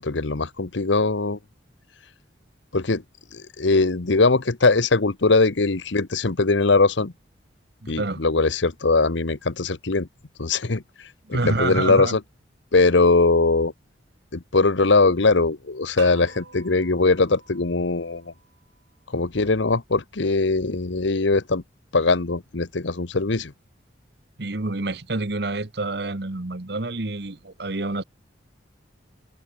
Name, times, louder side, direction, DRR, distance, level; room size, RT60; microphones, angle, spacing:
voice 1, 0.0-1.4 2.7-3.0 3.3-7.1 7.9-10.1 10.4-10.8 11.3-12.2 12.7-13.7 14.3-18.3 19.1-21.6 21.9-23.5, left 3 dB, 80° left, 1.1 m, -21 dB
voice 2, 7.8-8.2 11.3-12.1 24.4-28.0, right 2 dB, 60° right, 1.2 m, -27 dB
sound 1, 16.0-18.9, right 5 dB, 75° right, 6.2 m, -47 dB
head